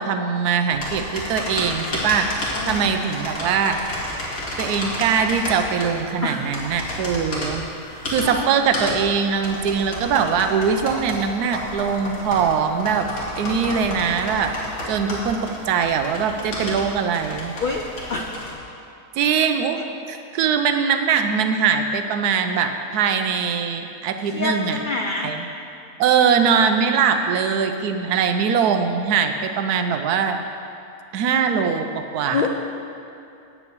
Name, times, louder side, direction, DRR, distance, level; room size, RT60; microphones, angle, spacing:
voice 1, 0.0-3.8 4.6-7.7 8.1-13.1 13.4-17.5 19.2-24.8 25.2-25.5 26.0-30.4 31.1-32.5, right 6 dB, 85° right, 7 dB, 1.2 m, -22 dB
sound 1, 0.7-18.5, left 1 dB, 85° left, 2.4 m, -31 dB
voice 2, 2.5-3.2 6.2-6.5 7.8-8.5 17.6-17.8 18.1-18.4 19.2-19.4 20.4-20.5 24.3-25.3 31.2-31.8 32.3-32.5, left 3 dB, 60° left, 1 dB, 0.5 m, -28 dB
8.6 x 6.1 x 7.9 m, 2.6 s
omnidirectional pair, 1.6 m